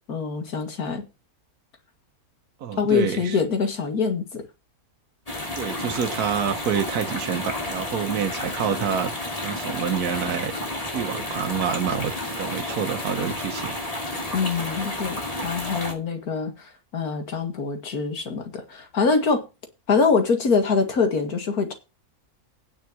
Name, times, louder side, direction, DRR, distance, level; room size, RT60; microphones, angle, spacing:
voice 1, 0.1-1.1 2.8-4.4 14.3-19.4 19.9-21.7, left 5 dB, 85° left, 2.4 m, -24 dB
voice 2, 2.6-3.4 5.6-9.1 9.4-10.5 10.9-13.8, right 7 dB, 85° right, 1.5 m, -27 dB
sound 1, 5.3-15.9, left 1 dB, 25° left, 2.8 m, -31 dB
9.6 x 5.7 x 7.3 m
omnidirectional pair, 1.6 m